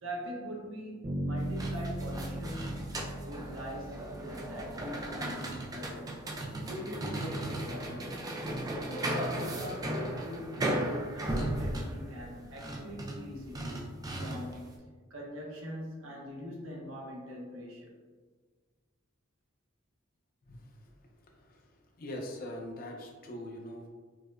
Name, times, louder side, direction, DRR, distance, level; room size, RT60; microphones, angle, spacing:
voice 1, 0.0-2.8 3.2-6.2 6.7-8.2 8.8-13.9 14.2-14.8 15.1-18.0, equal, 70° right, -1 dB, 0.8 m, -42 dB
Bass guitar, 1.0-5.0, right 1 dB, 40° right, 0.8 m, -38 dB
sound 1, 1.4-14.7, right 1 dB, 20° right, 0.3 m, -36 dB
voice 2, 22.0-23.9, left 1 dB, 45° left, 1 dB, 0.5 m, -41 dB
4.7 x 2.1 x 2.4 m, 1.4 s
head